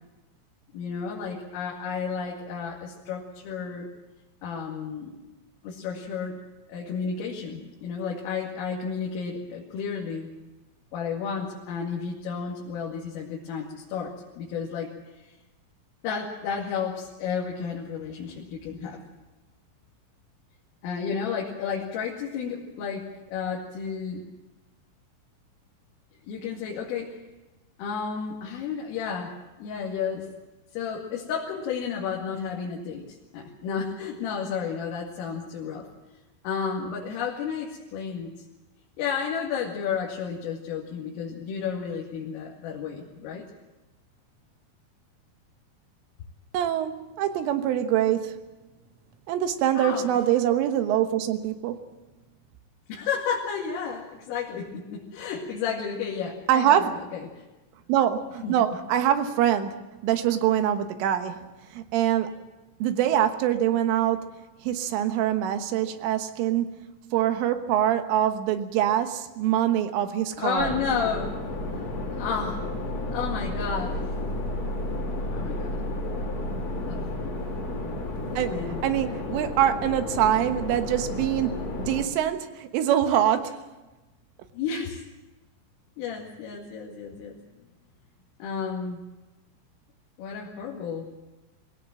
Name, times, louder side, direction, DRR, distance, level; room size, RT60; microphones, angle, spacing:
voice 1, 0.7-3.9 4.4-5.1 5.6-6.4 6.7-10.3 10.9-14.9 16.0-19.0 20.8-24.2 26.3-27.2 27.8-30.3 30.7-35.9 36.4-38.3 39.0-43.5 49.8-50.1 52.9-57.5 58.4-58.5 70.4-71.4 72.1-72.6 73.1-74.2 75.3-75.8 76.9-77.1 78.3-78.8 84.5-85.0 86.0-87.4 88.4-89.0 90.2-91.1, left 6 dB, 75° left, -2 dB, 4.8 m, -32 dB
voice 2, 46.5-48.4 49.3-51.9 56.5-57.0 57.9-62.3 62.8-64.3 64.6-70.7 78.4-78.5 78.8-83.6, right 10 dB, 75° right, 8 dB, 3.7 m, -24 dB
sound 1, 70.6-82.1, left 1 dB, 35° left, 3.3 m, -32 dB
22.0 x 18.0 x 7.7 m, 1.1 s
omnidirectional pair, 5.9 m